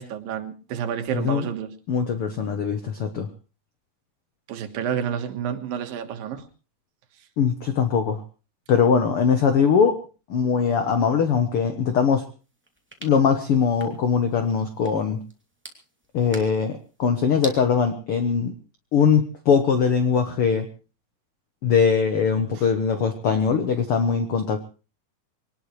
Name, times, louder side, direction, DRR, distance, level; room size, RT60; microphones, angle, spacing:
voice 1, 0.0-1.7 4.5-6.4, right 8 dB, 80° right, 7 dB, 3.2 m, -29 dB
voice 2, 1.1-1.5 1.9-3.3 7.4-8.2 8.7-10.0 10.3-12.3 13.0-15.2 16.1-18.5 18.9-20.7 21.6-24.6, left 6 dB, 60° left, 8 dB, 1.5 m, -21 dB
sound 1, 12.4-17.6, right 1 dB, 5° right, 2.1 m, -44 dB
23.0 x 19.0 x 3.3 m, 0.34 s
omnidirectional pair, 4.0 m